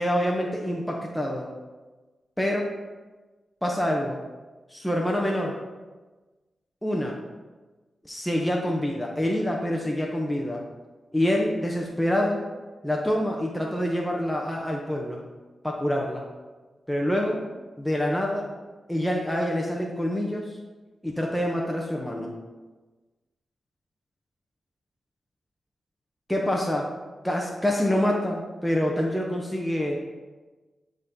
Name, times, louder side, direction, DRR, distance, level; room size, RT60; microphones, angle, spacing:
voice 1, 0.0-1.5 2.4-2.7 3.6-4.2 4.7-5.6 6.8-7.2 8.0-10.6 11.1-12.4 12.8-15.2 15.6-16.2 16.9-17.5 17.8-18.5 18.9-20.5 21.0-22.3 26.3-26.9 27.2-30.0, equal, 5° left, -1 dB, 0.8 m, -26 dB
10.0 x 3.7 x 2.8 m, 1.2 s
cardioid pair, 70°, 0 cm